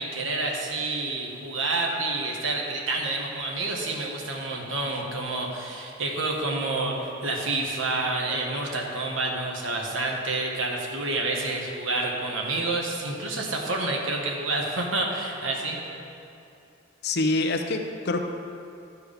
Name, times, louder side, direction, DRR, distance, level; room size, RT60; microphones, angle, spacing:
voice 1, 0.0-15.8, right 2 dB, 85° right, 0 dB, 1.2 m, -28 dB
voice 2, 17.0-18.2, left 2 dB, 60° left, 5 dB, 0.6 m, -25 dB
12.0 x 4.7 x 5.0 m, 2.7 s
head